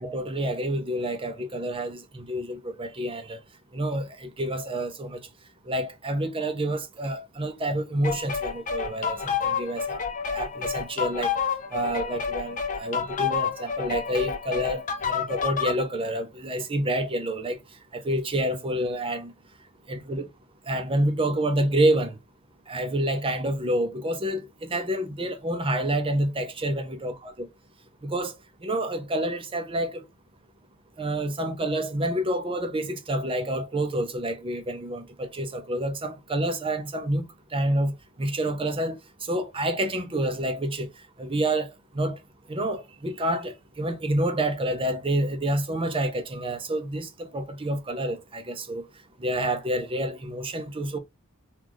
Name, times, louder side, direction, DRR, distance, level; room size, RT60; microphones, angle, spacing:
voice 1, 0.0-3.4 3.7-5.2 5.7-10.0 10.3-11.3 11.7-17.6 17.9-19.3 19.9-20.2 20.7-22.2 22.7-27.5 28.0-28.3 28.6-30.0 31.0-37.3 37.5-39.0 39.3-40.9 41.2-41.7 41.9-42.2 42.5-48.8 49.2-51.0, right 1 dB, 25° right, 0.6 m, -28 dB
sound 1, 8.0-15.8, left 6 dB, 40° left, 0.6 m, -29 dB
3.8 x 2.4 x 3.1 m
head